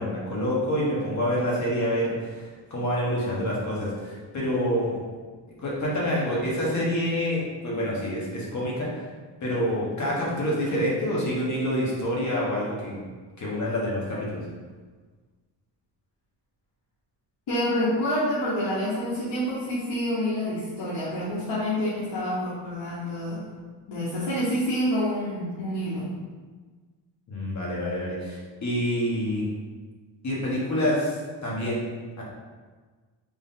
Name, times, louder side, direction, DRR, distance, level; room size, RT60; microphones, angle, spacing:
voice 1, 0.0-4.9 5.6-8.9 9.4-13.0 13.4-14.4 27.3-29.5 30.2-31.8 32.2-32.3, equal, 40° left, -5 dB, 1.2 m, -27 dB
voice 2, 17.5-23.4 23.9-26.1, equal, 65° left, -10 dB, 1.1 m, -27 dB
3.4 x 2.7 x 3.6 m, 1.4 s
cardioid pair, 115°, 45 cm